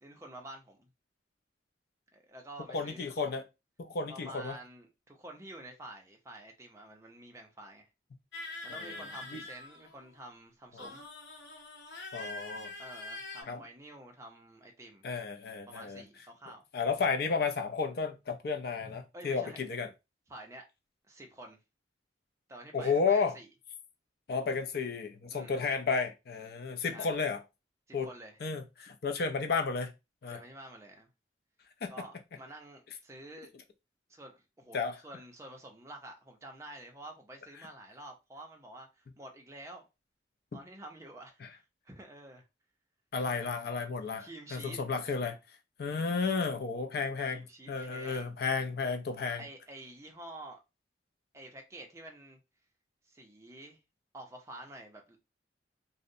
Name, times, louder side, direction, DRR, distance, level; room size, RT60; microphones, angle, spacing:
voice 1, 0.0-0.9 2.1-3.4 4.1-7.9 8.6-11.0 12.8-15.0 15.7-16.6 19.1-19.6 20.3-20.6 21.1-21.6 22.5-23.5 25.3-25.6 26.9-27.2 27.9-28.4 30.3-31.1 31.9-33.5 34.1-39.9 40.5-42.4 44.2-44.8 47.3-48.3 49.4-50.6 51.3-52.4 53.1-53.8 54.1-55.3, right 1 dB, 15° right, 0.4 m, -49 dB
voice 2, 2.7-3.4 3.8-4.6 8.7-9.0 9.3-9.4 10.8-10.9 12.1-12.7 13.5-13.6 15.0-16.0 16.7-19.9 22.7-23.4 24.3-27.4 27.9-28.1 28.4-29.9 30.2-30.4 31.8-31.9 34.7-35.0 40.5-40.6 41.4-41.5 43.1-45.4 45.8-49.4, left 5 dB, 55° left, 0.4 m, -32 dB
sound 1, 8.3-10.1 10.8-13.4, left 2 dB, 75° left, 0.9 m, -44 dB
2.6 x 2.0 x 2.6 m
head